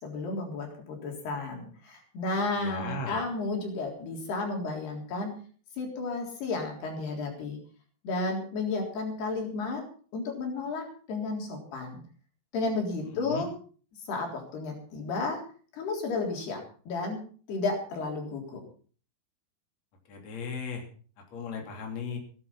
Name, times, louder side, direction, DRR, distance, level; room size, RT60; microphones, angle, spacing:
voice 1, 0.0-5.3 5.8-7.6 8.0-9.8 10.1-12.0 12.5-13.5 14.1-15.4 15.7-16.6 16.9-17.2 17.5-18.6, left 3 dB, 85° left, 1 dB, 5.9 m, -32 dB
voice 2, 2.5-3.2 13.0-13.5 20.1-20.9 21.2-22.2, left 4 dB, 45° left, 1 dB, 4.2 m, -37 dB
17.5 x 11.5 x 5.6 m, 0.42 s
omnidirectional pair, 4.5 m